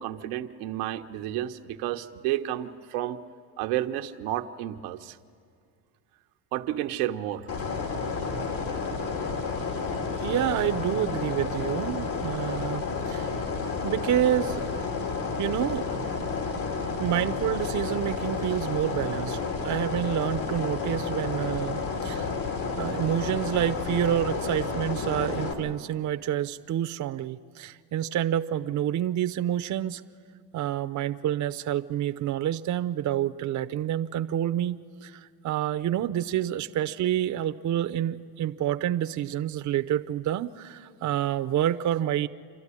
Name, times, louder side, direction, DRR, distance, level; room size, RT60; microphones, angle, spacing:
voice 1, 0.0-3.2 3.6-5.2 6.5-7.5, right 13 dB, 85° right, 5 dB, 1.0 m, -31 dB
sound 1, 7.5-25.5, left 4 dB, 70° left, 3.2 m, -31 dB
voice 2, 10.2-13.3 13.8-14.7 15.4-15.9 17.0-22.3 22.8-30.0 30.5-42.3, right 11 dB, 40° right, 8 dB, 0.7 m, -28 dB
27.5 x 12.5 x 9.8 m, 2.2 s
supercardioid pair, 90°, 44 cm